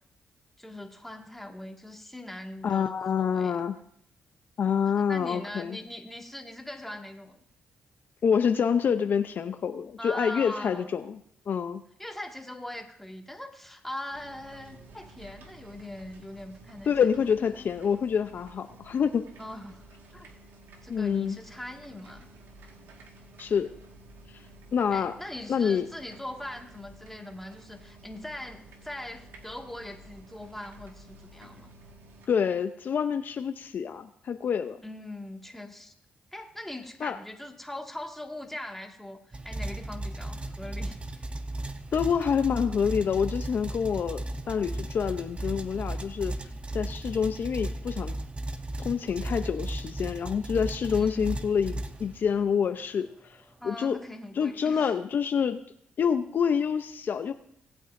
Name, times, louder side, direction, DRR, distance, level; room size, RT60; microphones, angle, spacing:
voice 1, 0.6-3.6 5.0-7.4 10.0-10.9 12.0-16.9 17.5-17.7 19.4-19.8 20.1-20.3 20.8-22.3 24.9-31.7 34.8-35.9 36.3-41.3 46.4-46.5 50.9-51.3 53.6-54.9, left 1 dB, 5° left, 2 dB, 1.9 m, -41 dB
voice 2, 2.6-3.8 4.6-5.8 8.2-11.2 11.5-11.8 16.9-19.3 20.9-21.4 23.4-23.7 24.3-24.4 24.7-25.1 25.5-25.9 32.3-34.8 37.0-37.2 41.9-46.4 46.7-48.2 48.8-54.0 54.4-55.6 56.0-57.3, left 7 dB, 60° left, 9 dB, 0.6 m, -27 dB
sound 1, 14.1-32.3, right 1 dB, 80° right, 1.7 m, -52 dB
sound 2, 39.3-52.5, right 1 dB, 30° right, 1.0 m, -36 dB
19.0 x 8.6 x 2.6 m, 0.70 s
supercardioid pair, 60°, 4 cm